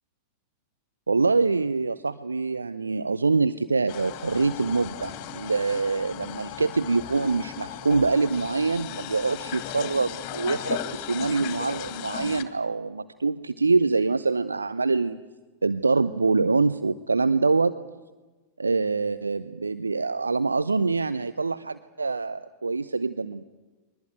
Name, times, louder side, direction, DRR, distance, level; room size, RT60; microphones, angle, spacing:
voice 1, 1.1-15.2 15.6-17.7 18.6-23.4, right 4 dB, 80° right, 13 dB, 0.7 m, -25 dB
sound 1, 3.9-12.4, left 11 dB, 40° left, 2.3 m, -37 dB
22.5 x 20.0 x 9.2 m, 1.2 s
figure-of-eight pair, 90°, 0 cm